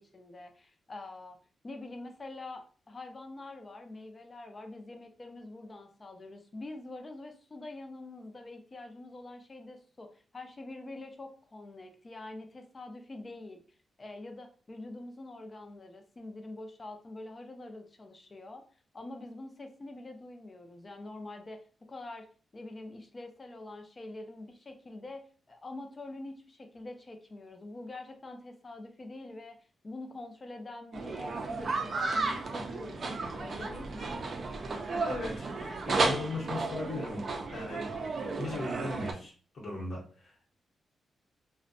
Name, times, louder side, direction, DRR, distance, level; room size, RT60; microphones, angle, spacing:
voice 1, 0.0-1.4 1.6-13.6 14.0-18.6 18.9-21.6 21.9-22.3 22.5-29.6 29.8-34.1, left 2 dB, 30° left, 5 dB, 0.4 m, -45 dB
sound 1, 30.9-39.1, right 3 dB, 45° right, 0.4 m, -33 dB
voice 2, 35.0-37.2 37.5-37.9 38.4-40.5, left 2 dB, 70° left, -5 dB, 0.9 m, -38 dB
2.5 x 2.1 x 2.5 m, 0.41 s
wide cardioid pair, 130°, 0 cm